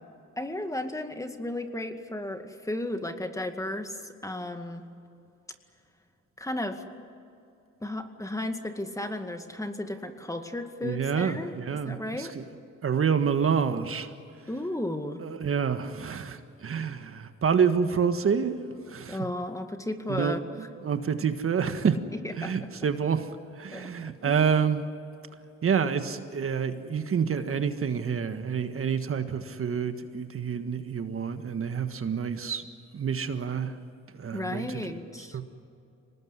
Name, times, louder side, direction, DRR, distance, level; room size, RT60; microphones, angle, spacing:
voice 1, 0.4-4.9 6.4-6.8 7.8-12.4 14.5-15.2 19.1-20.5 22.2-22.6 23.7-24.4 34.3-35.4, left 1 dB, 10° left, 7 dB, 2.1 m, -34 dB
voice 2, 10.8-12.5 12.8-14.1 15.2-18.5 18.9-19.2 20.1-20.4 20.8-22.0 22.4-23.3 23.5-24.8 25.6-32.6 32.9-33.8 34.2-34.9 35.3-35.4, right 6 dB, 45° right, 8 dB, 1.6 m, -28 dB
24.5 x 19.5 x 9.7 m, 2.6 s
cardioid pair, 90°, 30 cm